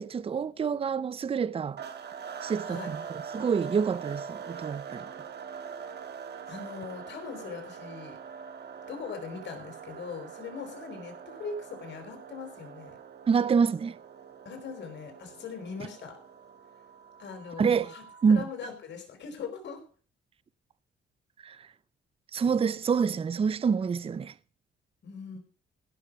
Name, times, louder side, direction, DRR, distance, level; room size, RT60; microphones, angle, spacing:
voice 1, 0.0-1.8 2.4-3.0 3.3-5.1 13.3-14.0 17.6-17.9 18.2-18.5 21.4-21.7 22.3-24.3, right 6 dB, 30° right, 0.5 m, -27 dB
sound 1, 1.8-18.5, right 7 dB, 55° right, 1.7 m, -43 dB
voice 2, 6.5-8.2 8.9-13.0 14.4-16.2 17.2-18.0 18.3-19.8 25.0-25.4, left 5 dB, 65° left, 4.4 m, -41 dB
16.0 x 6.7 x 6.1 m
cardioid pair, 90°, 20 cm